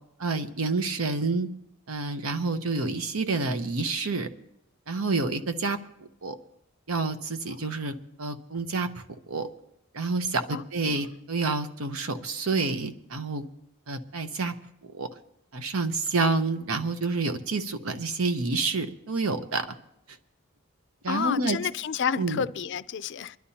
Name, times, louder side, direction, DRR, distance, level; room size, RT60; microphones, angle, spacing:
voice 1, 0.2-1.5 1.9-4.3 4.9-5.8 6.2-6.4 6.9-8.9 9.3-9.5 9.9-13.5 13.9-14.5 14.9-15.1 15.5-19.7 21.0-21.6 22.2-22.4, right 3 dB, 85° right, 1.0 m, -28 dB
voice 2, 21.1-23.4, left 7 dB, 55° left, 0.4 m, -30 dB
27.0 x 11.5 x 2.9 m
head